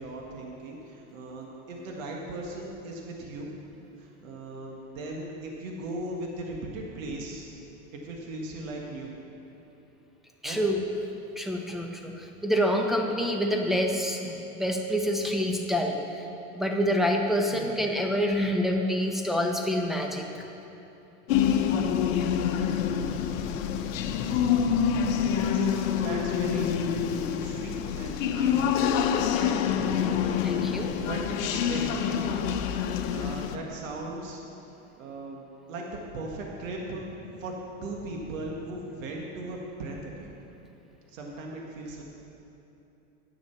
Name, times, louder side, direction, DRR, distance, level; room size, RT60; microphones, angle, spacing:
voice 1, 0.0-3.6 4.0-7.5 7.9-9.1 10.4-10.6 17.5-17.7 24.7-24.9 25.2-25.7 26.0-26.7 27.1-28.9 31.0-32.3 33.1-34.4 35.0-40.3 41.1-42.0, right 2 dB, 80° right, 0 dB, 1.8 m, -38 dB
voice 2, 10.4-10.8 11.4-16.3 16.5-20.4 30.4-31.0, equal, ahead, 1 dB, 1.1 m, -27 dB
sound 1, 21.3-33.6, left 8 dB, 75° left, 0.9 m, -26 dB
10.0 x 7.0 x 7.0 m, 2.9 s
supercardioid pair, 105°, 39 cm